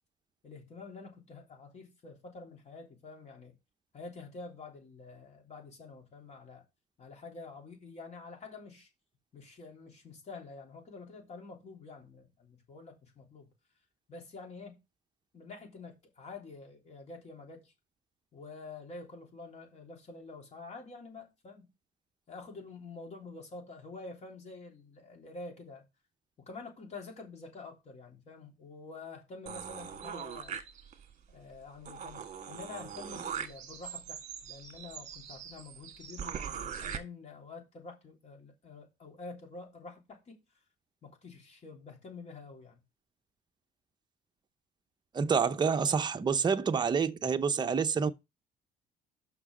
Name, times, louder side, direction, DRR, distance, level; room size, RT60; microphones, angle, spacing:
voice 1, 0.4-3.5 3.9-6.6 7.0-8.9 9.3-13.5 14.1-14.8 15.3-17.7 18.3-21.7 22.3-25.8 26.4-30.6 31.3-40.4 41.0-42.8, left 3 dB, 40° left, 3.3 m, -48 dB
sound 1, 29.5-31.1 31.5-31.6 31.8-37.0, right 7 dB, 45° right, 1.6 m, -41 dB
voice 2, 45.1-48.1, right 6 dB, 25° right, 0.7 m, -28 dB
6.1 x 5.9 x 6.1 m
cardioid pair, 110°, 17 cm